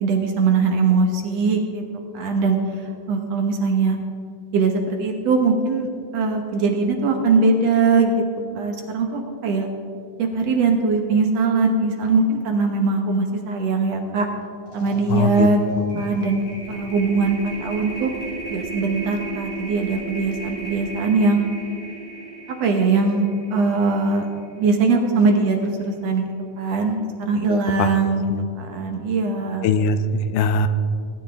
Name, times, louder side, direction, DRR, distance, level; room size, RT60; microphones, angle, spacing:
voice 1, 0.0-1.8 2.1-2.6 3.1-4.0 4.5-5.9 6.1-8.2 8.6-9.7 10.2-14.3 14.7-15.6 16.0-18.1 18.5-21.4 22.6-24.3 24.6-26.2 26.6-28.2 28.6-29.7, right 4 dB, 65° right, 3 dB, 1.9 m, -21 dB
sound 1, 14.2-14.3 14.6-24.9, right 3 dB, 65° left, 4.5 m, -35 dB
voice 2, 15.1-16.0 27.5-27.9 28.3-28.5 29.6-30.7, left 4 dB, 85° left, 10 dB, 2.2 m, -22 dB
18.5 x 9.9 x 3.4 m, 2.4 s
omnidirectional pair, 3.6 m